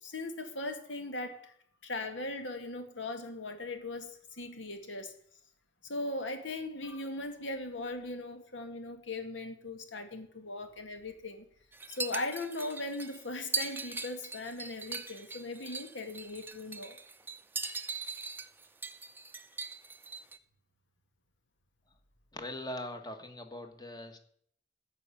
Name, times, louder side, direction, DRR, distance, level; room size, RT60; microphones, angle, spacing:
voice 1, 0.0-1.5 1.8-5.1 5.8-11.5 11.9-17.0, left 2 dB, 75° left, 2.0 m, -39 dB
sound 1, 11.7-20.4, right 4 dB, 10° right, 0.7 m, -40 dB
voice 2, 22.3-24.2, left 1 dB, 20° left, 1.5 m, -41 dB
15.0 x 5.6 x 8.6 m
head